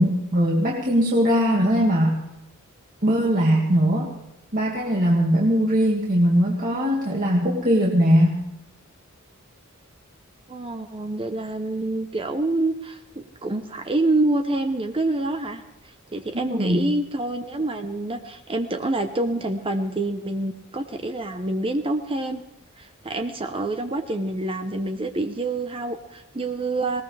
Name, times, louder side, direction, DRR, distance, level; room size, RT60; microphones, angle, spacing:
voice 1, 0.0-2.2 3.0-4.1 4.5-8.4 16.3-16.8, equal, 40° right, -2 dB, 2.2 m, -20 dB
voice 2, 10.5-15.6 16.1-22.4 22.8-27.0, right 2 dB, 25° right, 7 dB, 0.9 m, -27 dB
20.0 x 19.0 x 3.4 m, 0.89 s
head